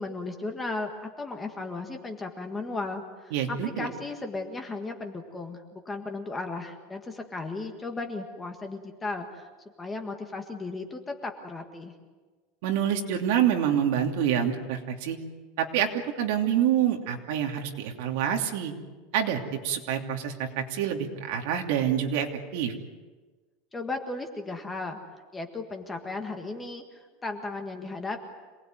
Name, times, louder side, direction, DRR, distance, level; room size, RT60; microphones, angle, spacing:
voice 1, 0.0-9.4 9.8-11.9 23.7-25.0 25.3-28.2, left 3 dB, 10° left, 5 dB, 1.6 m, -35 dB
voice 2, 3.3-3.9 12.6-15.2 15.6-18.7 19.1-22.7, right 9 dB, 55° right, 3 dB, 2.9 m, -27 dB
27.0 x 19.5 x 9.3 m, 1.3 s
supercardioid pair, 180°, 0 cm